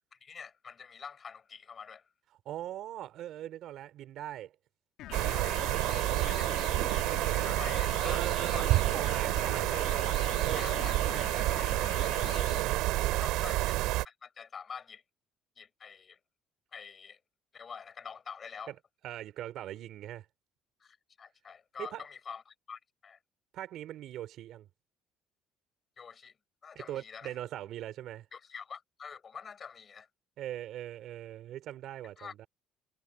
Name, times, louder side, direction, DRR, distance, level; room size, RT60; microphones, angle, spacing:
voice 1, 0.1-2.1 5.2-5.5 6.0-8.7 10.5-11.5 13.1-13.8 14.0-15.0 15.6-16.2 16.7-17.2 17.5-18.7 20.8-23.2 26.0-26.3 26.6-27.4 28.3-30.1 32.2-32.3, left 6 dB, 35° left, 5.8 m, -46 dB
voice 2, 2.5-4.5 8.0-10.7 11.8-13.3 18.7-18.8 19.0-20.3 21.8-22.0 23.5-24.7 26.8-28.3 30.4-32.5, right 12 dB, 65° right, 3.9 m, -41 dB
sound 1, 5.0-12.6, left 14 dB, 75° left, 2.3 m, -43 dB
sound 2, 5.1-14.1, right 17 dB, 85° right, 2.9 m, -29 dB
cardioid pair, 125°, 0 cm